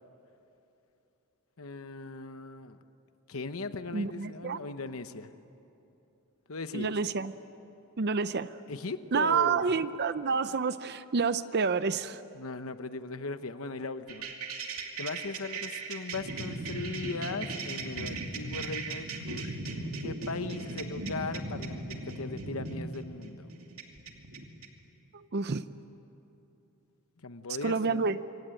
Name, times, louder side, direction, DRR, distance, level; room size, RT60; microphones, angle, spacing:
voice 1, 1.6-2.8 3.3-5.3 6.5-6.9 8.7-9.7 12.3-14.3 15.0-19.6 20.0-23.5 27.2-28.2, left 3 dB, 70° left, 10 dB, 1.0 m, -38 dB
voice 2, 3.9-4.6 6.7-7.3 8.0-8.5 9.1-12.2 25.1-25.6 27.6-28.2, right 5 dB, 50° right, 13 dB, 0.6 m, -29 dB
sound 1, 14.1-24.7, right 3 dB, 80° right, 2.6 m, -38 dB
27.0 x 24.5 x 9.0 m, 2.9 s
head